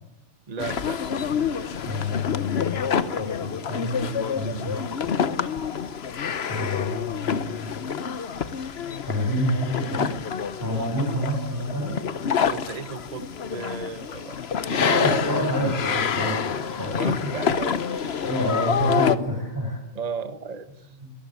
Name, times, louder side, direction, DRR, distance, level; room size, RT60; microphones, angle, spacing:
voice 1, 0.5-1.0 12.4-14.4 14.7-15.5 16.9-18.2 19.9-20.9, right 5 dB, 30° right, 11 dB, 1.2 m, -35 dB
sound 1, 0.6-19.2, left 7 dB, 50° left, 1.1 m, -27 dB
voice 2, 1.9-4.8 6.5-7.8 9.1-10.1 10.6-11.9 14.8-17.3 18.2-19.8 21.0-21.1, equal, 15° right, -2 dB, 7.8 m, -28 dB
22.5 x 14.5 x 9.6 m, 0.94 s
omnidirectional pair, 1.4 m